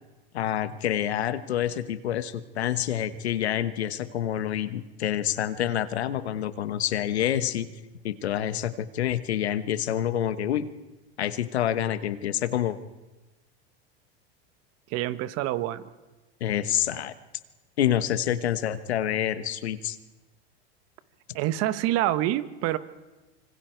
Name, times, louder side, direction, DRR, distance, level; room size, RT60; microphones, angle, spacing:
voice 1, 0.3-7.7 8.0-10.6 11.2-12.8 16.4-17.1 17.8-20.0, left 11 dB, 90° left, 13 dB, 1.3 m, -27 dB
voice 2, 14.9-15.9 21.3-22.8, right 14 dB, 50° right, 13 dB, 1.3 m, -26 dB
26.0 x 25.0 x 4.6 m, 1.2 s
hypercardioid pair, 110°, 31 cm